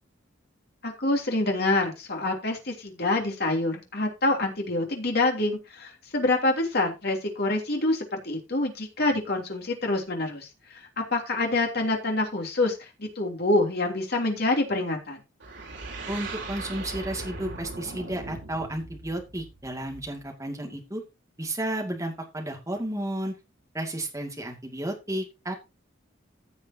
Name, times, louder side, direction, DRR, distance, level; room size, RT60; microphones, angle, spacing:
voice 1, 0.8-10.5 11.0-15.2, left 2 dB, 55° left, 2 dB, 3.2 m, -26 dB
sound 1, 15.4-20.2, right 3 dB, 60° right, 3.7 m, -39 dB
voice 2, 16.1-21.0 21.4-23.4 23.7-25.6, right 1 dB, 15° right, 2 dB, 2.4 m, -32 dB
15.5 x 7.3 x 2.9 m, 0.26 s
head